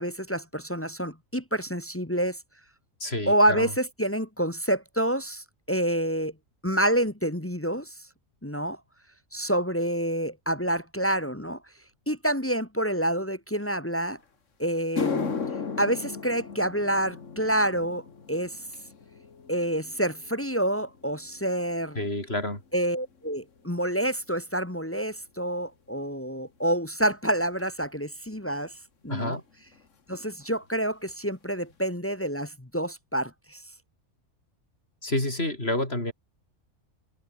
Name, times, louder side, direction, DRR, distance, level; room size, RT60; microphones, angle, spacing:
voice 1, 0.0-2.4 3.3-6.3 6.6-7.9 8.4-8.8 9.3-11.6 12.1-14.2 14.6-15.3 15.8-18.6 19.5-22.0 22.7-28.8 29.0-29.4 30.1-33.6, right 1 dB, 10° left, 1.6 m, -28 dB
voice 2, 3.0-3.7 22.0-22.6 29.1-29.4 35.0-36.1, left 1 dB, 55° left, 7.1 m, -29 dB
sound 1, 14.2-14.3 14.8-23.3 23.6-24.0 24.7-24.8 27.6-27.7 29.3-29.4 29.6-29.9 30.1-30.7 31.1-31.2 31.7-31.8, left 5 dB, 80° left, 2.2 m, -37 dB
omnidirectional pair, 1.3 m